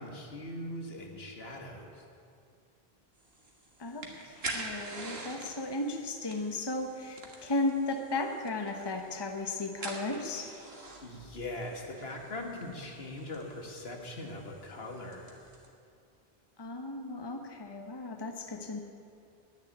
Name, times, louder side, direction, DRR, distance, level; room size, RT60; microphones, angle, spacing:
voice 1, 0.0-2.0 11.0-15.4, left 1 dB, 75° left, 2 dB, 1.9 m, -41 dB
sound 1, 3.2-15.7, right 2 dB, 75° right, 2.0 m, -46 dB
voice 2, 3.8-10.5 16.6-18.8, left 2 dB, 25° left, 4 dB, 1.0 m, -35 dB
10.5 x 10.0 x 9.7 m, 2.4 s
omnidirectional pair, 1.0 m